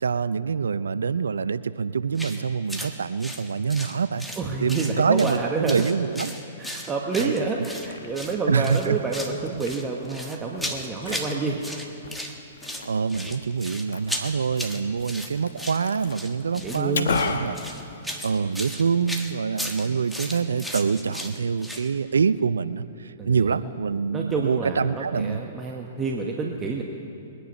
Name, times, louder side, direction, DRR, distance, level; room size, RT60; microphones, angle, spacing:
voice 1, 0.0-4.3 4.6-6.3 7.2-7.3 8.5-9.0 11.1-11.2 12.8-17.6 18.2-25.4, right 5 dB, 80° right, 16 dB, 0.4 m, -25 dB
sound 1, 2.1-2.4 2.7-2.9 3.2-4.4 4.7-5.4 5.7-7.9 8.1-8.4 8.6-9.3 9.6-11.3 11.6-12.3 12.6-21.9, equal, ahead, 1.4 m, -35 dB
voice 2, 4.4-5.8 6.6-11.6 16.6-17.2 23.2-23.6 24.1-26.8, right 4 dB, 20° right, 0 dB, 1.2 m, -28 dB
Liquid, 7.6-18.6, left 4 dB, 70° left, 1.1 m, -36 dB
22.0 x 10.0 x 5.3 m, 2.7 s
hypercardioid pair, 115°, 0 cm